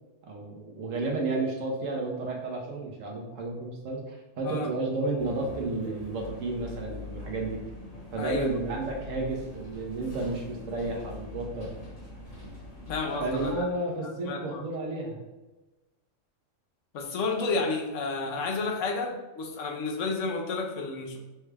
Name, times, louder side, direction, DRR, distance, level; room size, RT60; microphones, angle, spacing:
voice 1, 0.2-7.6 8.1-11.7 13.2-15.2, right 2 dB, 85° right, 0 dB, 1.3 m, -32 dB
sound 1, 5.2-13.6, left 2 dB, 45° left, 1.4 m, -43 dB
voice 2, 8.2-8.5 12.9-13.5 14.2-14.6 16.9-21.2, left 3 dB, 75° left, 2 dB, 1.0 m, -31 dB
6.1 x 2.3 x 3.3 m, 1.1 s
omnidirectional pair, 1.3 m